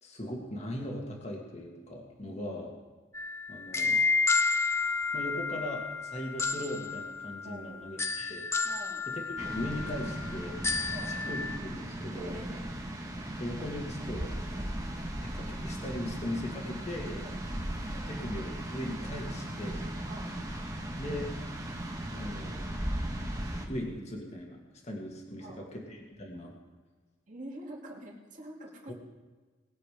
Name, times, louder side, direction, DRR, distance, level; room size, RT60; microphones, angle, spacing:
voice 1, 0.0-2.7 3.5-4.0 5.1-8.5 9.1-10.6 11.0-12.3 13.4-14.3 15.3-17.2 17.9-19.9 21.0-21.3 22.1-22.6 23.7-24.6 24.8-26.5 28.9-29.0, left 1 dB, 30° left, 0 dB, 1.9 m, -39 dB
voice 2, 2.2-2.6 7.4-7.9 8.6-9.0 10.9-11.1 12.1-12.7 13.1-13.3 14.5-14.7 17.1-17.4 20.0-20.3 25.4-25.7 27.3-28.9, right 1 dB, 40° right, -2 dB, 2.5 m, -46 dB
sound 1, 3.1-11.6, left 4 dB, 15° left, 0.4 m, -31 dB
sound 2, 9.4-23.7, right 1 dB, 15° right, 1.3 m, -37 dB
20.5 x 7.7 x 5.0 m, 1.3 s
head